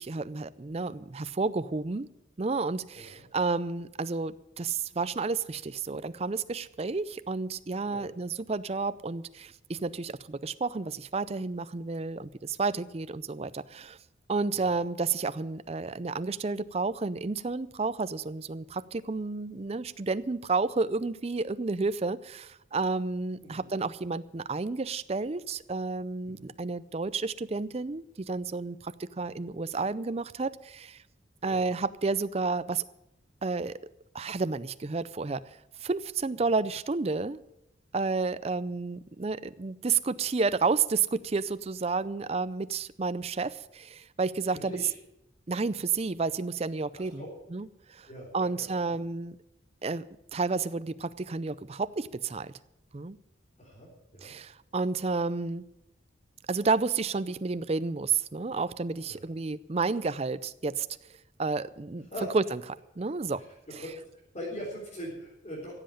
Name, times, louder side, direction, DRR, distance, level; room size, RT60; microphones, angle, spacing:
voice 1, 0.0-2.1 2.4-14.0 14.3-31.0 31.4-32.8 33.4-33.8 34.1-35.4 35.8-37.4 37.9-44.8 45.5-47.2 47.5-48.1 48.3-49.4 49.8-50.0 50.3-52.5 52.9-53.2 54.2-55.6 56.5-60.9 61.4-62.1 62.3-62.6 63.0-63.4 63.7-63.8, right 4 dB, 30° right, 15 dB, 0.5 m, -31 dB
voice 2, 2.9-3.3 7.9-8.2 14.5-14.7 23.4-23.6 26.2-26.5 31.4-31.7 36.3-36.4 44.5-44.9 46.9-47.3 48.1-49.1 53.6-54.3 59.0-59.2 62.1-62.3 63.8-63.9 64.3-65.7, equal, 35° left, -6 dB, 4.2 m, -42 dB
15.5 x 7.8 x 8.6 m, 0.85 s
head